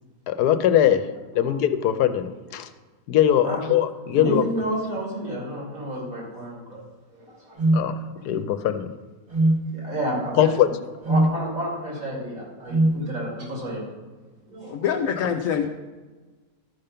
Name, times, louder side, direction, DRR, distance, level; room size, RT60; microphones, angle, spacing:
voice 1, 0.3-1.1 1.3-2.7 3.1-4.4 7.7-8.9 10.4-10.7, left 10 dB, 85° left, 10 dB, 1.2 m, -21 dB
voice 2, 3.4-3.7 4.1-6.8 7.1-7.6 8.3-8.4 9.7-10.5 11.1-13.8 14.5-15.0 15.5-15.6, equal, 60° right, -3 dB, 3.2 m, -31 dB
sound 1, 7.6-7.9 9.3-9.6 11.0-11.4 12.7-13.0, right 1 dB, 25° right, 1.0 m, -20 dB
voice 3, 14.7-15.7, left 8 dB, 65° left, 5 dB, 0.9 m, -24 dB
13.0 x 5.2 x 5.6 m, 1.3 s
omnidirectional pair, 1.6 m